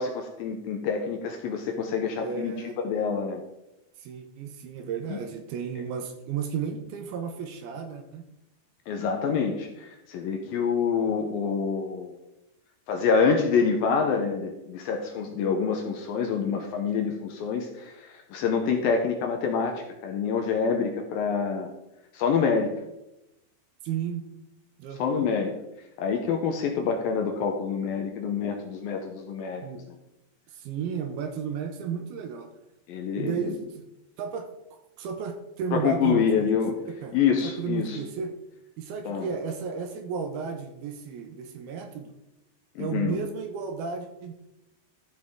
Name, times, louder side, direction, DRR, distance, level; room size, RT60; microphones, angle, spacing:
voice 1, 0.0-2.5 2.8-3.4 5.1-5.2 8.9-12.2 12.9-21.7 22.1-22.7 25.0-25.5 26.0-30.0 32.9-33.6 35.7-36.8 37.1-38.0 39.1-39.3 42.8-43.2, left 6 dB, 75° left, 3 dB, 2.3 m, -26 dB
voice 2, 2.2-2.7 4.0-8.2 23.8-24.2 24.8-25.3 29.6-29.9 30.5-32.5 33.2-33.9 34.2-34.5 35.0-36.5 36.9-37.2 37.4-38.4 38.8-42.1 42.8-44.3, right 6 dB, 75° right, 6 dB, 2.5 m, -33 dB
13.5 x 6.4 x 3.7 m, 0.91 s
omnidirectional pair, 4.8 m